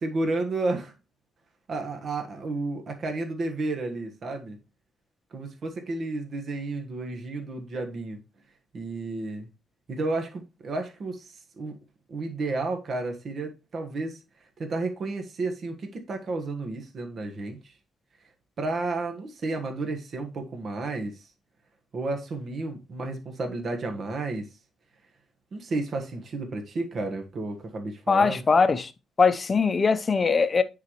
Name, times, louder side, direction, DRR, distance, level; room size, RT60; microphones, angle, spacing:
voice 1, 0.0-0.9 1.7-4.6 5.3-8.2 8.7-9.5 9.9-11.8 12.1-14.2 14.6-17.7 18.6-21.3 21.9-24.5 25.5-28.4, right 2 dB, 50° right, 1.3 m, -32 dB
voice 2, 28.1-28.9 29.2-30.6, left 5 dB, 35° left, 0.7 m, -21 dB
9.5 x 4.0 x 3.0 m
cardioid pair, 90°, 0 cm